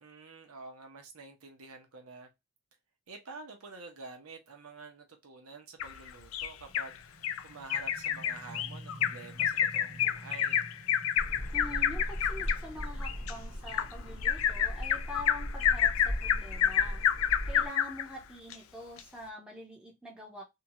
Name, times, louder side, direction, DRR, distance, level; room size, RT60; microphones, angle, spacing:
voice 1, 0.0-2.3 3.1-10.7, right 3 dB, 85° right, 0.8 m, -48 dB
Bird vocalization bird call bird song, 5.8-6.9 7.2-7.4 7.7-18.0 18.5-18.6 19.0-19.1, left 9 dB, 70° left, 0.3 m, -29 dB
sound 1, 6.6-18.1, equal, 50° right, 1.1 m, -52 dB
sound 2, 11.2-17.7, equal, 30° right, 1.2 m, -38 dB
voice 2, 11.5-17.0 17.4-20.4, equal, 5° right, 0.8 m, -45 dB
2.8 x 2.3 x 2.7 m
head